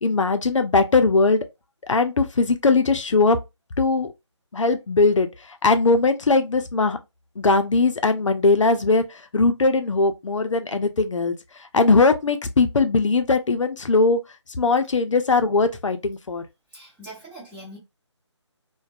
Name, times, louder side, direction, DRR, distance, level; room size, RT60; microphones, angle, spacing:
voice 1, 0.0-1.4 1.8-3.4 3.8-4.1 4.5-7.0 7.4-11.3 11.6-14.2 14.6-16.4, left 3 dB, 80° left, 0.5 m, -20 dB
voice 2, 16.7-17.8, right 1 dB, 10° right, 1.1 m, -42 dB
2.5 x 2.1 x 2.4 m
figure-of-eight pair, 155°, 16 cm